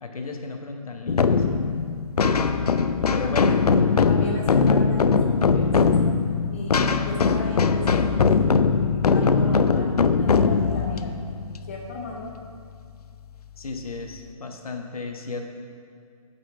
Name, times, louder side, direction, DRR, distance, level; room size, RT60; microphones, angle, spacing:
voice 1, 0.0-1.4 3.1-3.5 13.6-15.5, left 3 dB, 70° left, 3 dB, 1.2 m, -34 dB
sound 1, 1.1-12.5, left 5 dB, 90° left, 0.5 m, -21 dB
voice 2, 3.2-3.6 4.1-5.9 6.5-8.3 8.7-11.1 11.6-12.4, left 2 dB, 20° left, -1 dB, 0.6 m, -36 dB
8.9 x 5.2 x 5.8 m, 2.2 s
hypercardioid pair, 165°, 19 cm